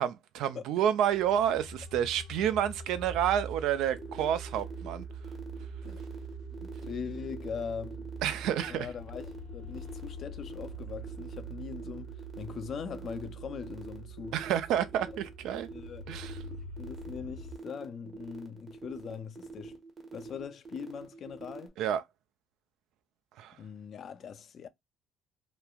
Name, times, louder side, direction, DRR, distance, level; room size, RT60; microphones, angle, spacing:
voice 1, 0.0-5.1 8.2-8.9 14.3-15.7 16.1-16.4 21.8-22.0 23.4-23.6, right 10 dB, 75° right, 0.3 m, -29 dB
sound 1, 1.0-17.6, right 3 dB, 75° left, 0.9 m, -44 dB
sound 2, 4.0-21.7, right 4 dB, 40° right, 0.9 m, -46 dB
voice 2, 6.6-8.1 8.7-14.4 15.7-16.1 16.5-19.8 20.1-21.8 23.6-24.7, left 7 dB, 55° left, 0.4 m, -41 dB
3.0 x 2.1 x 2.3 m
supercardioid pair, 75°, 0 cm